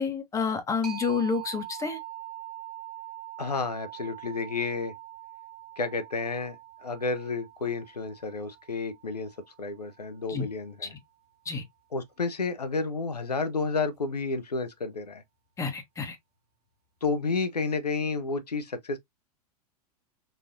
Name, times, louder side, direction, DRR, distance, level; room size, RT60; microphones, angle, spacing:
voice 1, 0.0-2.0 10.3-10.5 11.5-11.6 15.6-16.2, left 5 dB, 15° left, 0.9 m, -29 dB
sound 1, 0.8-10.2, right 13 dB, 80° right, 1.5 m, -44 dB
voice 2, 3.4-4.9 5.8-6.6 6.8-9.3 9.6-10.9 11.9-15.2 17.0-19.0, left 4 dB, 80° left, 0.6 m, -31 dB
4.0 x 2.6 x 2.5 m
figure-of-eight pair, 90°, 20 cm